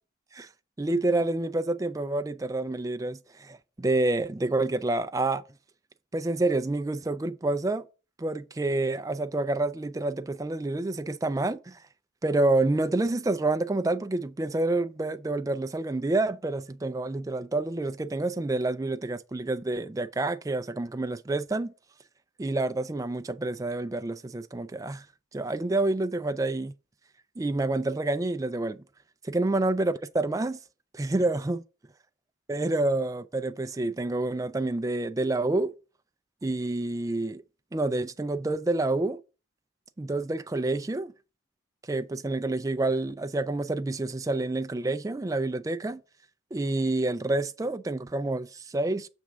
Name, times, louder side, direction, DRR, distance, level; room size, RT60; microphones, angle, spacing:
voice 1, 0.8-5.4 6.1-7.8 8.2-11.8 12.2-21.7 22.4-25.0 25.3-26.7 27.4-28.8 29.2-30.6 30.9-31.6 32.5-35.7 36.4-37.4 37.7-39.2 40.0-41.1 41.9-46.0 46.5-49.1, right 2 dB, 15° right, 0.3 m, -28 dB
7.2 x 3.5 x 6.1 m
head